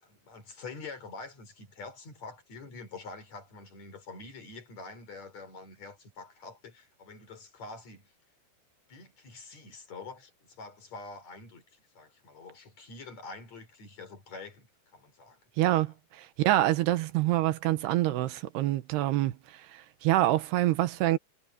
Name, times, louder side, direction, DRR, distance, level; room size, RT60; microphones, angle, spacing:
voice 1, 0.0-8.1 8.9-15.4 15.9-16.0, left 3 dB, 40° left, 5.1 m, -46 dB
voice 2, 15.6-19.4 19.7-21.2, right 15 dB, 75° right, 3.1 m, -26 dB
omnidirectional pair, 5.0 m